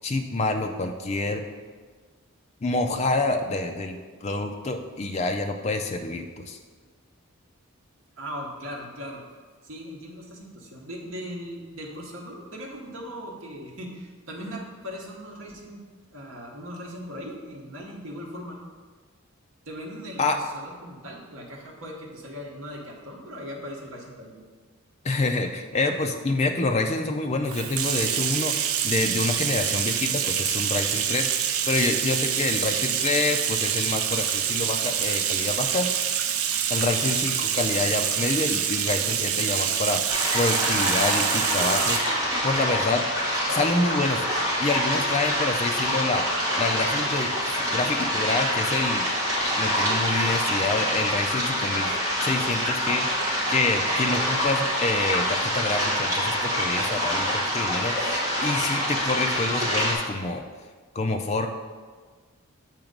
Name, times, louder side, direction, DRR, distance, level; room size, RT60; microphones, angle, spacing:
voice 1, 0.0-1.4 2.6-6.6 20.2-20.4 25.0-35.9 36.7-43.0 43.5-46.3 46.6-49.1 49.6-51.9 52.2-53.2 53.5-60.4 60.9-61.5, left 3 dB, 30° left, 5 dB, 0.4 m, -27 dB
voice 2, 8.2-9.2 9.6-15.8 16.1-18.6 19.7-24.4, equal, 65° right, -2 dB, 1.0 m, -39 dB
Bathtub (filling or washing), 27.5-42.1, right 9 dB, 80° right, 0.4 m, -26 dB
sound 1, 40.1-59.9, equal, 15° right, 1.3 m, -26 dB
7.4 x 2.9 x 5.1 m, 1.5 s
head